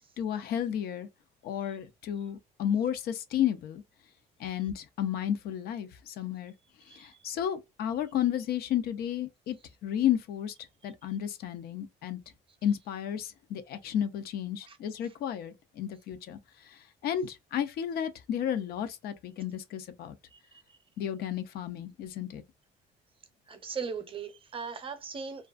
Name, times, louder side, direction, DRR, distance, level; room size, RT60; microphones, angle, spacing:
voice 1, 0.2-1.1 1.4-3.8 4.4-6.5 6.9-9.6 9.8-10.5 10.8-12.2 12.6-20.2 21.0-22.4, left 10 dB, 65° left, 0.5 m, -32 dB
voice 2, 6.9-7.2 10.8-10.9 14.6-14.8 15.0-15.1 20.3-20.8 23.5-25.5, right 5 dB, 30° right, 0.6 m, -40 dB
2.4 x 2.3 x 2.3 m
cardioid pair, 110°, 17 cm